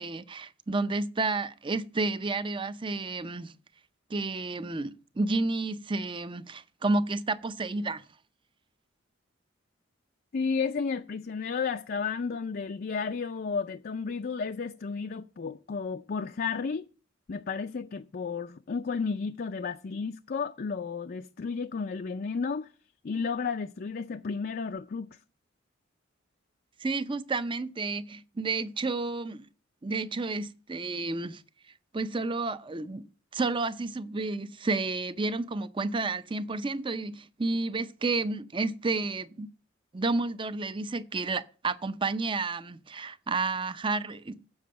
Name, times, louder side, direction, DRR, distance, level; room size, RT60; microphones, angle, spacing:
voice 1, 0.0-3.5 4.1-8.0 26.8-29.5 29.8-31.4 31.9-33.1 33.3-39.5 39.9-44.4, right 3 dB, 25° right, 0.6 m, -31 dB
voice 2, 10.3-16.9 17.3-22.7 23.0-25.2, left 5 dB, 50° left, 0.4 m, -32 dB
7.6 x 7.2 x 7.6 m
head